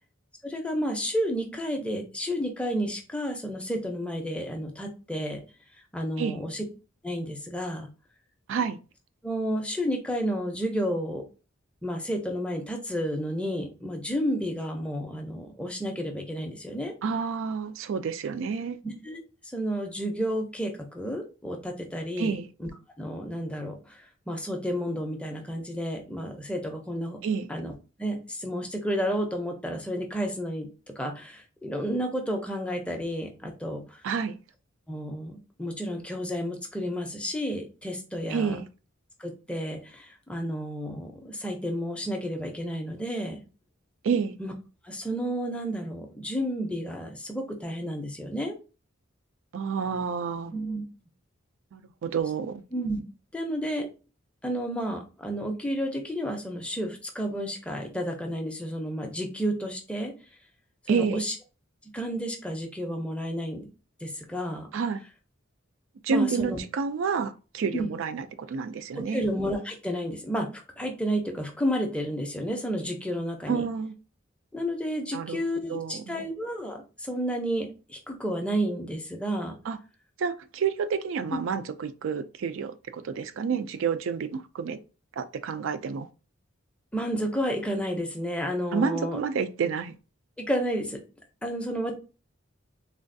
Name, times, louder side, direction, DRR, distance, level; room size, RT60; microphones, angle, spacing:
voice 1, 0.4-5.4 5.9-6.6 7.0-7.9 9.2-11.2 11.8-16.9 18.8-19.2 19.5-22.3 22.6-22.7 23.0-24.0 24.3-27.2 27.5-27.7 28.0-30.7 31.0-34.0 34.9-38.5 39.2-43.4 44.4-44.5 44.8-48.5 50.5-50.8 52.7-53.0 53.3-53.9 54.4-60.1 60.9-61.3 61.9-63.7 64.0-64.7 66.1-66.6 67.7-67.9 69.1-70.5 70.8-73.6 74.5-79.6 81.3-81.4 86.9-89.2 90.4-91.0 91.4-91.9, equal, 5° left, 0.5 m, -31 dB
voice 2, 17.0-18.8 22.2-22.5 27.2-27.5 34.0-34.4 38.3-38.7 44.0-44.4 49.5-50.5 51.7-52.6 60.9-61.2 64.7-65.0 66.0-69.2 73.5-73.9 75.1-75.4 75.7-76.2 79.7-79.8 80.2-84.8 85.2-86.1 88.7-89.9, right 6 dB, 65° right, 0.3 m, -29 dB
3.3 x 2.3 x 2.6 m
head